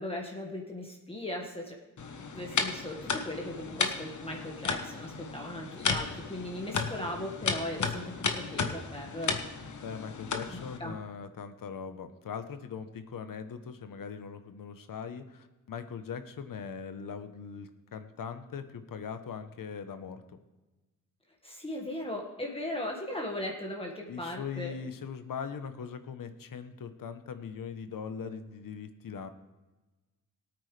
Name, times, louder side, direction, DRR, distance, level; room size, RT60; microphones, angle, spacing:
voice 1, 0.0-1.8 2.3-9.4 10.5-10.9 21.4-24.8, left 1 dB, 15° left, -1 dB, 1.6 m, -38 dB
sound 1, 2.0-10.8, left 5 dB, 65° left, 1.2 m, -34 dB
voice 2, 9.8-20.4 24.1-29.3, left 6 dB, 90° left, 9 dB, 1.0 m, -40 dB
18.0 x 8.9 x 3.3 m, 1.1 s
wide cardioid pair, 105°, 32 cm